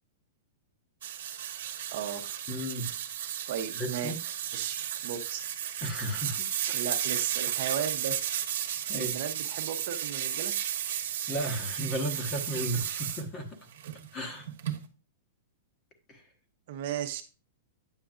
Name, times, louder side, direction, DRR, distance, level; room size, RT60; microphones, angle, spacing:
sound 1, 1.0-13.2 13.7-14.9, right 10 dB, 65° right, 1.1 m, -34 dB
voice 1, 1.9-2.5 3.5-4.1 4.5-5.4 6.7-8.2 8.9-10.6 16.7-17.2, right 8 dB, 50° right, 0.8 m, -35 dB
voice 2, 2.5-2.9 3.7-4.2 5.8-6.4 8.9-9.1 11.3-13.7 14.1-14.5 16.1-16.2, right 1 dB, 20° left, 1.1 m, -34 dB
8.9 x 6.7 x 2.5 m
supercardioid pair, 170°, 0 cm